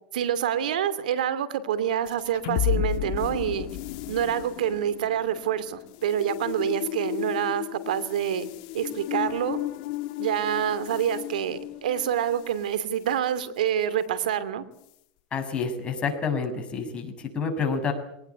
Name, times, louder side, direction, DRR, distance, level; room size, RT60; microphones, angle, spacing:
voice 1, 0.1-3.7 4.1-8.5 8.7-9.6 10.2-14.6, right 9 dB, 90° right, 14 dB, 2.8 m, -27 dB
sound 1, 2.1-12.6, left 14 dB, 65° left, 1.7 m, -33 dB
voice 2, 15.3-17.9, left 5 dB, 25° left, 4 dB, 6.7 m, -28 dB
23.0 x 19.0 x 9.7 m, 0.77 s
supercardioid pair, 125°, 4 cm